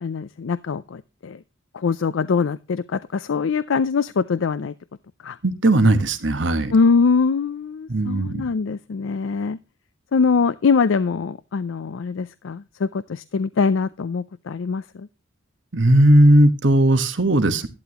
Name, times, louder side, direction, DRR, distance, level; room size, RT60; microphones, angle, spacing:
voice 1, 0.0-1.4 1.7-4.7 5.2-5.4 6.7-9.6 10.1-15.1, left 5 dB, 75° left, 14 dB, 0.4 m, -23 dB
voice 2, 5.4-6.7 7.9-8.4 15.7-17.7, right 1 dB, 65° right, 10 dB, 1.3 m, -17 dB
11.5 x 11.5 x 2.9 m, 0.29 s
head